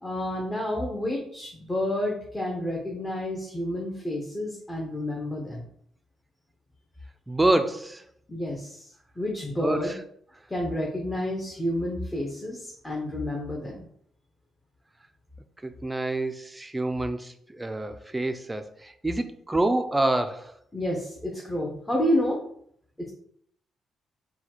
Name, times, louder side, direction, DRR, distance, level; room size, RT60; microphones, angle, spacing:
voice 1, 0.0-5.6 8.3-8.9 9.2-9.9 10.5-13.8 20.7-22.4 23.0-23.1, left 1 dB, 15° left, -2 dB, 0.8 m, -29 dB
voice 2, 7.3-8.0 9.6-9.9 15.6-20.5, right 2 dB, 15° right, 8 dB, 0.4 m, -27 dB
4.1 x 2.3 x 4.3 m, 0.66 s
cardioid pair, 90°, 0 cm